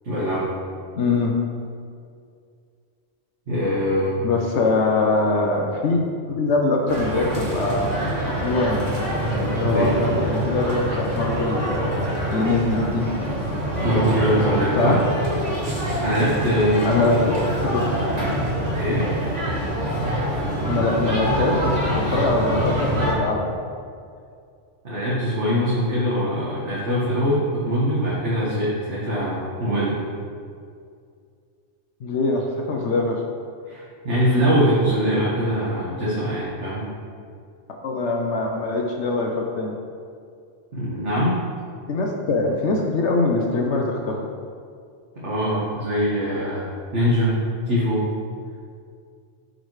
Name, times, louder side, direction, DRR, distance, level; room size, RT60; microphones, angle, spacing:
voice 1, 0.0-0.5 3.5-4.2 9.6-10.0 13.8-15.0 16.0-17.0 18.7-19.1 24.8-30.0 33.7-36.8 40.7-41.4 45.2-47.4 47.6-48.1, equal, 65° right, -9 dB, 1.8 m, -22 dB
voice 2, 1.0-1.3 4.2-6.0 6.3-8.0 8.4-8.8 9.5-13.1 14.7-15.0 16.8-17.2 17.6-17.8 20.7-23.5 32.0-33.2 37.8-39.8 41.9-44.2, left 3 dB, 70° left, 1 dB, 1.0 m, -23 dB
sound 1, 6.9-23.1, right 1 dB, 35° right, 1.5 m, -25 dB
12.0 x 5.2 x 3.2 m, 2.3 s
omnidirectional pair, 1.3 m